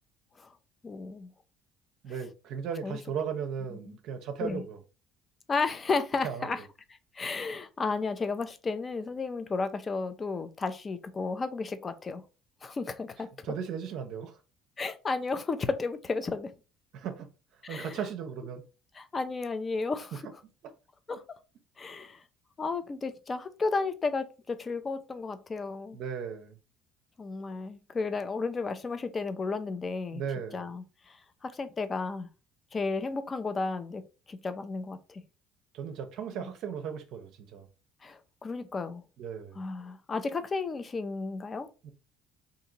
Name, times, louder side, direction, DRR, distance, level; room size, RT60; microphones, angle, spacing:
voice 1, 0.8-1.3 2.8-3.0 3.7-4.0 4.4-4.6 5.5-6.6 7.1-12.2 12.6-13.3 14.8-16.5 17.6-18.0 19.0-20.2 21.1-21.2 21.8-22.2 22.6-26.0 27.2-30.2 30.5-32.3 32.7-35.2 36.3-36.5 38.0-39.0 39.6-41.7, left 4 dB, 35° left, 0.5 m, -33 dB
voice 2, 2.0-4.8 6.2-6.5 13.4-14.4 16.9-17.3 17.7-18.6 20.1-20.2 21.1-21.2 25.9-26.6 30.1-30.6 35.7-37.7 39.2-39.6 41.8-41.9, right 7 dB, 70° right, 0.5 m, -36 dB
2.8 x 2.6 x 3.9 m
supercardioid pair, 75°, 0 cm